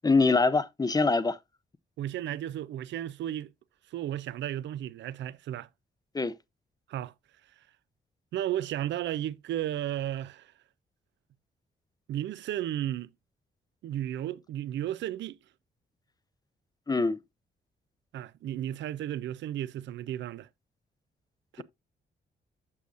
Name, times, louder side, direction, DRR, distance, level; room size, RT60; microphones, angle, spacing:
voice 1, 0.0-1.4 6.1-6.4 16.9-17.2, left 3 dB, 20° left, 0.5 m, -24 dB
voice 2, 2.0-3.5 3.9-5.7 6.9-7.1 8.3-10.5 12.1-13.1 13.8-15.4 18.1-20.5 21.5-21.6, right 12 dB, 75° right, 0.4 m, -34 dB
8.3 x 6.3 x 2.5 m
cardioid pair, 70°, 19 cm